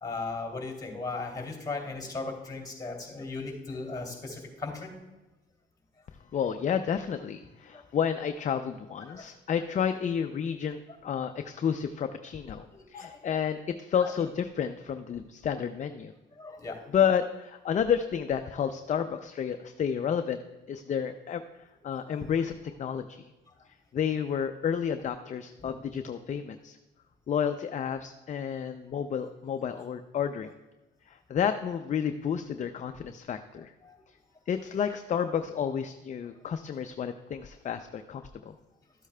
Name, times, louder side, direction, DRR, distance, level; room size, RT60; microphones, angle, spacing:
voice 1, 0.0-4.9 7.7-7.8 9.1-9.3 12.7-13.3 13.9-14.1 15.1-15.2 16.4-16.8 22.1-22.3 25.6-25.7 33.8-34.0 34.3-34.4, left 3 dB, 15° left, 1 dB, 2.6 m, -37 dB
voice 2, 6.3-16.1 16.9-20.4 20.7-21.4 21.8-23.3 23.9-26.8 27.3-30.5 31.1-33.7 34.5-38.5, left 8 dB, 40° left, 8 dB, 0.4 m, -30 dB
13.0 x 8.3 x 2.2 m, 1.0 s
cardioid pair, 90°, 20 cm